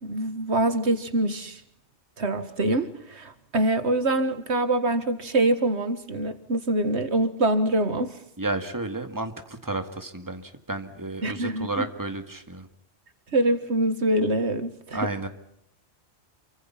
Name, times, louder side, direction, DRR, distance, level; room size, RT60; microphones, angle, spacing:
voice 1, 0.0-1.6 2.2-8.2 11.2-11.9 13.3-15.0, right 1 dB, 70° right, 10 dB, 1.9 m, -25 dB
voice 2, 8.4-12.7 14.9-15.3, right 2 dB, 15° right, 7 dB, 2.1 m, -32 dB
28.0 x 24.5 x 5.8 m, 0.76 s
omnidirectional pair, 1.2 m